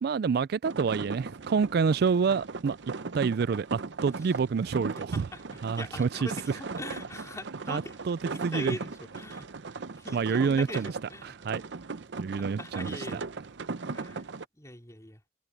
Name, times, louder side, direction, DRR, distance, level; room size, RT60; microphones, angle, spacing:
voice 1, 0.0-2.8 3.1-5.3 5.6-6.3 7.7-8.8 10.1-10.9 11.4-11.6 12.2-13.2, right 5 dB, 60° right, 0.4 m, -27 dB
sound 1, 0.6-14.5, right 4 dB, 75° right, 0.7 m, -38 dB
voice 2, 4.9-8.0 8.3-9.5 9.9-11.3 12.4-13.3 13.9-14.2 14.5-15.2, left 1 dB, 15° left, 3.9 m, -42 dB
head